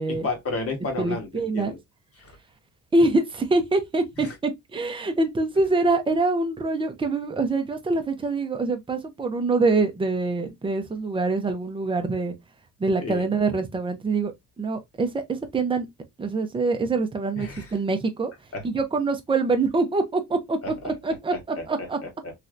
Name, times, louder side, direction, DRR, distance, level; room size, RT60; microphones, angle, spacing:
voice 1, 0.1-1.8 2.2-2.3 4.2-4.3 13.0-13.3 17.4-17.7 18.5-18.6 21.6-22.3, left 3 dB, 40° left, 1.3 m, -32 dB
voice 2, 1.0-1.7 2.9-12.3 12.8-15.9 16.2-18.3 18.6-22.0, right 3 dB, 15° right, 0.6 m, -25 dB
3.3 x 2.7 x 2.4 m
cardioid pair, 125°, 34 cm